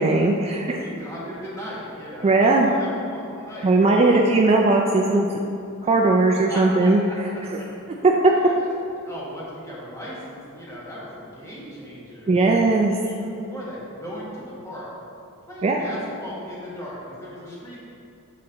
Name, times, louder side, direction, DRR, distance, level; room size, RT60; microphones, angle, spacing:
voice 1, 0.0-0.8 2.2-2.7 3.6-5.3 5.9-7.0 8.2-8.3 12.3-12.9 15.6-15.8, right 2 dB, 30° right, 0 dB, 0.3 m, -18 dB
voice 2, 0.8-4.2 5.8-5.9 6.5-8.0 8.3-12.6 13.0-14.9 15.5-17.8, equal, 15° left, -7 dB, 1.5 m, -37 dB
7.6 x 4.2 x 3.8 m, 2.6 s
head